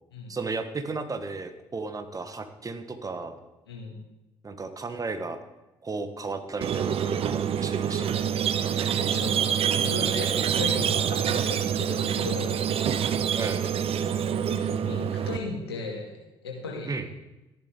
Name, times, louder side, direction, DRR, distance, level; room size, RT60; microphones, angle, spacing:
voice 1, 0.3-3.4 4.4-5.4 5.8-8.1 13.3-13.6 16.9-17.1, right 3 dB, 25° right, 8 dB, 1.3 m, -34 dB
voice 2, 3.7-4.0 8.9-12.6 14.7-16.1 16.4-17.0, left 3 dB, 85° left, -1 dB, 2.2 m, -36 dB
Squeak, 6.6-15.4, right 8 dB, 50° right, 0.8 m, -26 dB
13.5 x 11.0 x 3.7 m, 1.0 s
hypercardioid pair, 50°, 13 cm